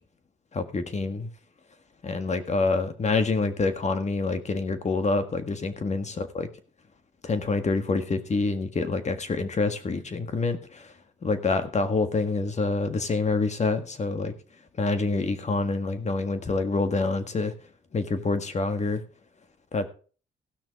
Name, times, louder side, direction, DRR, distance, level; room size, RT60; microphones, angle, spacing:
voice 1, 0.5-1.3 2.0-6.5 7.2-10.9 11.2-14.3 14.8-17.5 17.9-19.0 19.7-19.9, left 3 dB, 35° left, 9 dB, 1.7 m, -27 dB
16.5 x 6.1 x 4.7 m, 0.39 s
cardioid pair, 90°, 20 cm